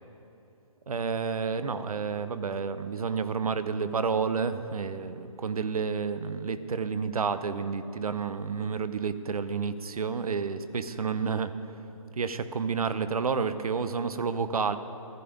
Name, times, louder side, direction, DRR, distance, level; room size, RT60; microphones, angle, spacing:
voice 1, 0.9-11.5 12.2-14.8, right 5 dB, 80° right, 11 dB, 0.8 m, -30 dB
13.5 x 11.0 x 5.1 m, 2.9 s
hypercardioid pair, 155°, 18 cm